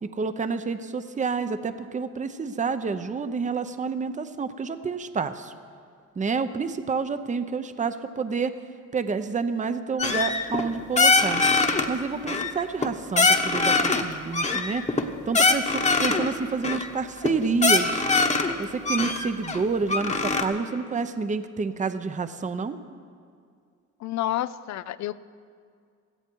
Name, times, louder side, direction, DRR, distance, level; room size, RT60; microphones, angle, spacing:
voice 1, 0.0-5.5 6.2-8.5 8.9-11.4 11.9-14.9 15.3-18.0 18.6-22.8, right 5 dB, 25° right, 10 dB, 0.7 m, -28 dB
sound 1, 10.0-10.7 11.0-11.9 12.3-12.9 13.2-14.0 14.3-16.3 16.6-16.9 17.2-17.3 17.6-18.5 18.9-20.4, left 3 dB, 25° left, 1.2 m, -22 dB
voice 2, 24.0-25.1, left 13 dB, 65° left, 16 dB, 0.6 m, -29 dB
17.0 x 14.0 x 4.6 m, 2.2 s
cardioid pair, 90°, 30 cm